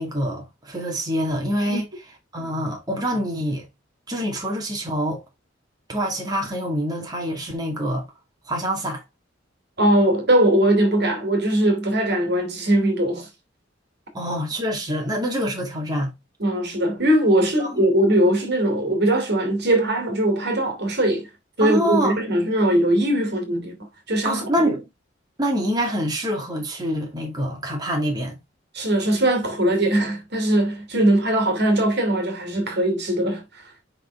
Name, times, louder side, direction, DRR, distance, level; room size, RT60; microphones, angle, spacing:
voice 1, 0.0-1.9 2.3-3.7 4.1-5.2 5.9-8.0 8.5-9.0 14.1-16.1 17.6-17.7 21.6-22.2 24.2-24.9 25.4-28.4, equal, 20° right, 2.3 m, -25 dB
voice 2, 9.8-13.3 16.4-21.3 21.6-24.5 28.7-33.6, right 1 dB, 60° right, 2.6 m, -20 dB
7.4 x 5.6 x 3.4 m
head